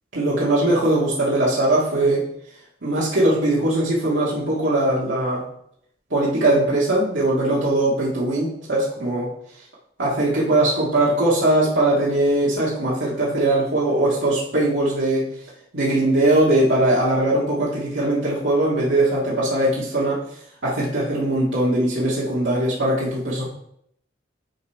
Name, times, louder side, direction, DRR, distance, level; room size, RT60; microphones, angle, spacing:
voice 1, 0.1-2.3 2.8-5.4 6.1-9.3 10.0-15.3 15.7-20.2 20.6-23.5, right 1 dB, 75° right, -6 dB, 1.8 m, -20 dB
9.7 x 4.0 x 4.4 m, 0.71 s
head